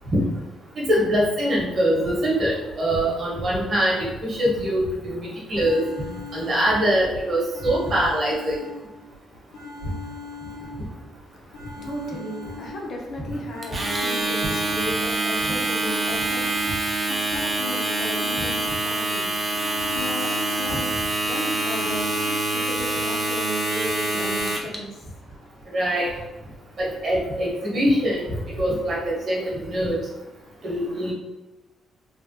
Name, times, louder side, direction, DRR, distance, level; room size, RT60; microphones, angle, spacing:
voice 1, 0.8-5.8 6.1-8.6 25.7-26.1 26.8-28.3 28.6-30.0 30.6-31.1, equal, 45° right, -4 dB, 1.0 m, -23 dB
sound 1, 5.5-7.1 7.5-9.1 9.5-11.1 11.5-13.1 13.5-15.1 15.5-17.1 17.5-19.1 19.5-21.1 21.5-22.3, left 4 dB, 80° left, 0.8 m, -40 dB
voice 2, 11.2-19.3 19.9-22.1 22.5-25.0, left 1 dB, 55° left, -1 dB, 0.6 m, -35 dB
Domestic sounds home sounds, 13.6-24.8, right 2 dB, 20° right, 0.4 m, -25 dB
3.2 x 2.1 x 2.6 m, 1.0 s
cardioid pair, 140°, 0 cm